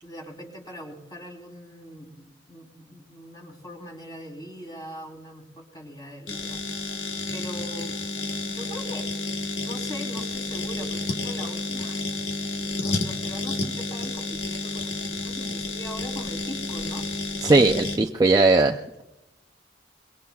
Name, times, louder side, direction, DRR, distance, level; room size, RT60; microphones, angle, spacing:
voice 1, 0.0-6.6 7.3-8.0 8.4-9.1 9.6-12.3 12.6-17.1, equal, 20° left, 0 dB, 3.5 m, -41 dB
sound 1, 6.3-18.0, left 2 dB, 75° left, 1.4 m, -30 dB
voice 2, 17.4-19.0, right 3 dB, 20° right, 2 dB, 0.5 m, -19 dB
23.5 x 22.0 x 2.4 m, 0.94 s
head